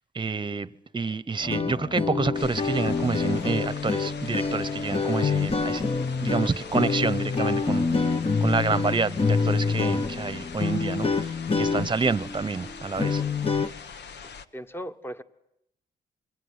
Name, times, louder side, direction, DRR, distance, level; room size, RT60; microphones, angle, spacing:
voice 1, 0.1-0.7 0.9-5.8 6.2-13.2, right 4 dB, 25° right, 1.0 m, -28 dB
sound 1, 1.4-13.7, left 4 dB, 30° left, 1.1 m, -26 dB
sound 2, 2.3-14.5, left 6 dB, 75° left, 1.3 m, -43 dB
voice 2, 14.5-15.2, equal, 15° left, 1.4 m, -37 dB
26.5 x 22.5 x 9.7 m
cardioid pair, 80°, 18 cm